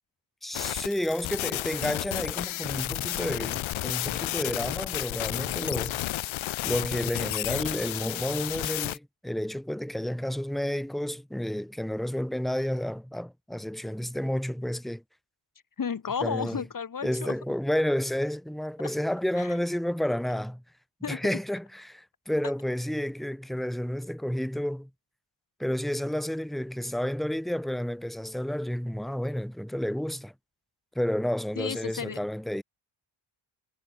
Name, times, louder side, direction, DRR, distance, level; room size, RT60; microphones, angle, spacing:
voice 1, 0.4-6.0 6.6-15.0 16.2-16.6 17.0-20.6 21.1-24.9 25.6-30.3 31.0-32.6, equal, ahead, 2.1 m, -31 dB
sound 1, 0.5-9.0, left 16 dB, 75° left, 0.5 m, -32 dB
voice 2, 15.8-17.4 19.4-19.5 21.0-21.2 31.6-32.2, left 6 dB, 40° left, 1.8 m, -33 dB
wide cardioid pair, 135°, 48 cm